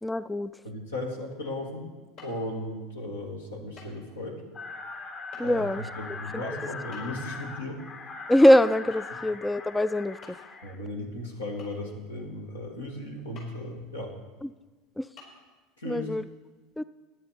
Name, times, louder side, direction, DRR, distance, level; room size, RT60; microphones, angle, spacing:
voice 1, 0.0-0.5 5.4-5.8 6.1-6.5 8.3-10.2 14.4-14.5 15.0-15.1 15.8-16.2 16.8-16.9, left 1 dB, 10° left, 16 dB, 0.3 m, -23 dB
voice 2, 0.6-1.9 2.2-4.4 5.4-7.8 10.6-14.1 15.8-16.1, left 1 dB, 80° left, 2 dB, 1.9 m, -36 dB
sound 1, 2.2-2.4 3.8-4.0 4.3-4.4 5.3-5.4 6.9-7.3 8.9-9.2 9.5-9.6 10.2-10.6 11.6-12.1 13.4-13.6 14.2-14.3 15.2-15.3, left 3 dB, 60° left, 5.5 m, -49 dB
sound 2, 4.5-10.8, left 4 dB, 45° left, 1.4 m, -40 dB
16.5 x 10.5 x 4.3 m, 1.3 s
figure-of-eight pair, 75°, 0 cm